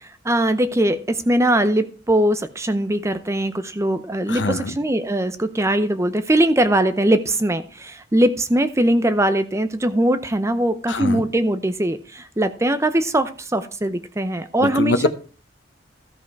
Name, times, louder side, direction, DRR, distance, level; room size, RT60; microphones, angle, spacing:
voice 1, 0.0-15.1, right 1 dB, 15° right, 0.6 m, -21 dB
voice 2, 4.3-4.8 10.9-11.2 14.6-15.1, left 2 dB, 80° left, 0.9 m, -23 dB
13.5 x 5.4 x 4.6 m
head